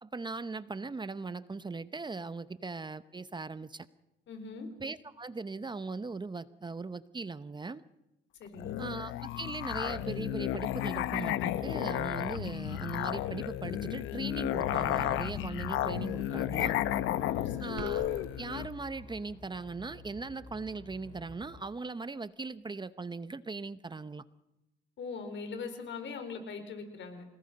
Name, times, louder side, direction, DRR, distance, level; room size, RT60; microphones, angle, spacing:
voice 1, 0.0-3.9 4.8-7.8 8.8-16.8 17.6-18.0 18.4-24.2, right 3 dB, 25° right, 14 dB, 0.8 m, -39 dB
voice 2, 4.3-4.7 8.4-8.7 17.2-17.7 25.0-27.2, left 4 dB, 70° left, 7 dB, 4.8 m, -41 dB
Musical instrument, 8.6-18.7, left 13 dB, 90° left, 0.9 m, -33 dB
sound 1, 9.7-21.7, left 2 dB, 30° left, 3.4 m, -50 dB
sound 2, 17.8-18.3, right 7 dB, 75° right, 3.6 m, -43 dB
28.0 x 18.5 x 5.3 m, 0.93 s
cardioid pair, 90°, 20 cm